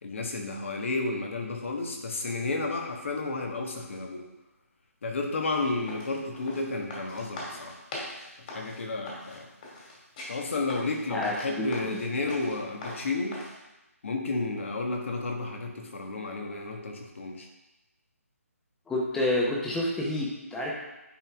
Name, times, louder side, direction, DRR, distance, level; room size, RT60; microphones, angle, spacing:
voice 1, 0.0-4.2 5.0-7.8 8.5-9.5 10.3-13.4 14.0-17.5, left 3 dB, 55° left, 2 dB, 1.5 m, -32 dB
sound 1, 5.4-13.5, left 2 dB, 35° left, 2.4 m, -42 dB
voice 2, 11.1-12.0 18.9-20.7, left 1 dB, 5° left, -3 dB, 1.0 m, -29 dB
10.0 x 4.3 x 3.6 m, 1.0 s
figure-of-eight pair, 150°, 8 cm